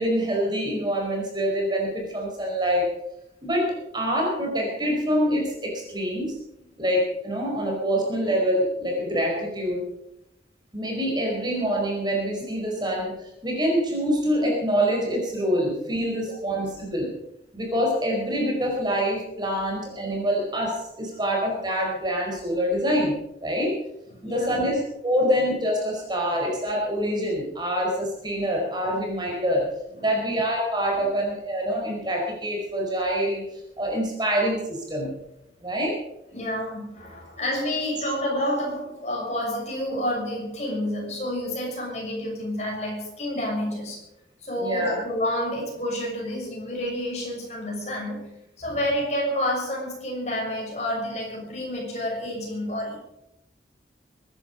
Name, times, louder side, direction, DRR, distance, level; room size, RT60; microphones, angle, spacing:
voice 1, 0.0-2.9 3.4-6.4 6.8-9.8 10.7-17.1 17.5-23.7 24.2-29.7 30.0-33.4 33.8-35.2 35.6-36.0 44.6-44.9, equal, 25° right, -1 dB, 4.9 m, -25 dB
voice 2, 16.3-16.6 24.1-24.6 30.0-30.1 30.9-31.0 36.3-44.0 44.4-48.3 48.6-53.0, left 1 dB, 40° left, -2 dB, 6.5 m, -29 dB
23.0 x 11.0 x 5.3 m, 0.83 s
head